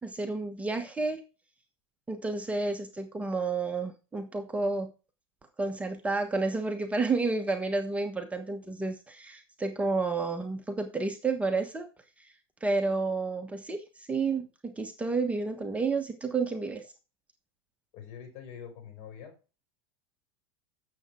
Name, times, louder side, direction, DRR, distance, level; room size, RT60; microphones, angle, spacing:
voice 1, 0.0-1.2 2.1-4.9 5.6-11.8 12.2-12.3 12.6-16.8, right 3 dB, 10° right, 5 dB, 1.3 m, -30 dB
voice 2, 17.9-19.3, left 8 dB, 50° left, 5 dB, 4.7 m, -45 dB
9.0 x 7.4 x 4.4 m, 0.31 s
supercardioid pair, 115°, 13 cm